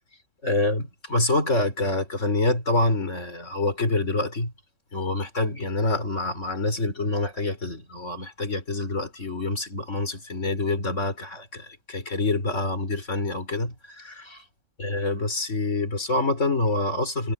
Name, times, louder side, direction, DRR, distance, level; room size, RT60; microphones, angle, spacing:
voice 1, 0.4-4.5 4.9-14.4 14.8-17.3, left 2 dB, 75° left, 4.5 m, -26 dB
omnidirectional pair, 1.3 m